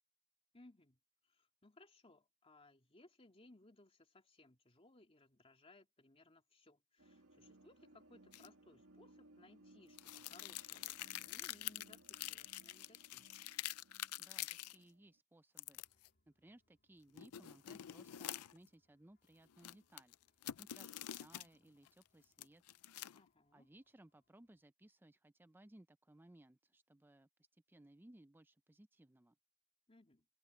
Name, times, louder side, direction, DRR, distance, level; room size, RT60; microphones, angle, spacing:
voice 1, 0.5-13.3 23.1-23.7 29.9-30.3, left 2 dB, 25° left, 2.8 m, -65 dB
sound 1, 7.0-15.2, right 2 dB, 65° right, 2.3 m, -65 dB
sound 2, 8.3-8.5 10.0-14.7 15.6-16.1 17.1-18.7 19.5-21.5 21.9-23.3, left 14 dB, 85° left, 0.5 m, -47 dB
voice 2, 14.2-15.8 16.3-20.2 20.6-22.6 23.5-27.3 27.7-29.4, right 1 dB, 10° right, 0.5 m, -63 dB
sound 3, 15.6-24.6, left 2 dB, 50° left, 3.4 m, -84 dB
head